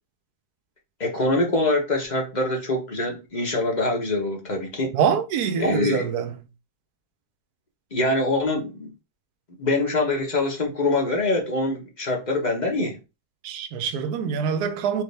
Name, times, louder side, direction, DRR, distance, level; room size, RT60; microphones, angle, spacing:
voice 1, 1.0-4.9 5.6-6.0 7.9-8.9 9.6-13.0, left 2 dB, 35° left, 1.0 m, -24 dB
voice 2, 4.9-6.4 13.4-15.0, right 7 dB, 85° right, 1.2 m, -25 dB
4.7 x 2.6 x 3.3 m
omnidirectional pair, 1.6 m